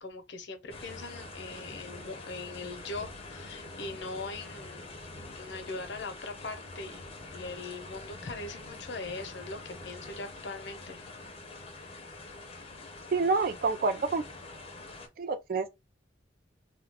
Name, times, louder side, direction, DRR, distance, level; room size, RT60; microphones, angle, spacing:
voice 1, 0.0-5.0 5.3-7.0 7.3-11.0, left 3 dB, 70° left, 0.6 m, -41 dB
sound 1, 0.7-15.1, left 2 dB, 30° left, 0.5 m, -45 dB
voice 2, 13.1-14.2 15.2-15.7, right 4 dB, 50° right, 0.4 m, -28 dB
2.3 x 2.3 x 3.3 m
head